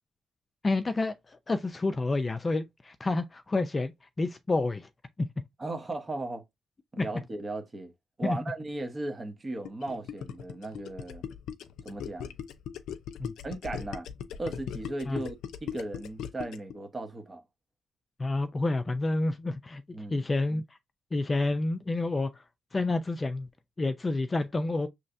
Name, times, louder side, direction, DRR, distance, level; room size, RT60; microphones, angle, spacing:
voice 1, 0.6-3.9 4.2-4.9 5.2-5.3 7.0-7.1 8.2-8.4 13.2-13.3 15.1-15.2 18.2-19.8 20.1-20.6 21.1-22.4 22.7-23.5 23.8-24.9, left 2 dB, 25° left, 0.5 m, -29 dB
voice 2, 5.6-6.4 6.9-7.9 8.2-11.2 11.8-12.3 13.4-14.1 14.4-15.4 15.6-17.4 19.9-20.2, right 2 dB, 25° right, 1.1 m, -36 dB
Gurgling, 9.6-16.7, left 8 dB, 80° left, 0.5 m, -38 dB
5.6 x 3.1 x 2.6 m
cardioid pair, 90°, 0 cm